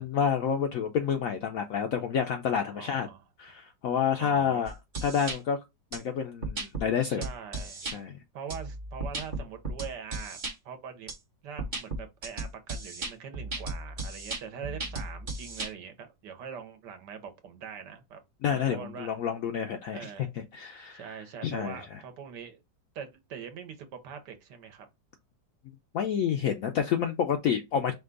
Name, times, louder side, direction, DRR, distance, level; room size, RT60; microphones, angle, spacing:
voice 1, 0.0-3.1 3.4-4.7 5.0-5.6 5.9-7.2 7.9-8.1 18.4-20.1 20.5-21.1 21.4-22.0 25.9-27.9, left 7 dB, 70° left, 0.8 m, -29 dB
voice 2, 2.7-3.2 4.2-4.7 7.1-7.8 8.3-11.1 11.4-18.2 18.5-19.1 19.9-20.3 20.9-22.6 22.9-24.9, right 7 dB, 75° right, 1.4 m, -43 dB
sound 1, 4.7-5.4 5.9-6.0 6.4-6.8 7.2-8.0 8.5-10.5 11.1-11.2 11.6-15.7, right 2 dB, 35° right, 0.9 m, -35 dB
5.0 x 2.3 x 3.7 m
omnidirectional pair, 1.9 m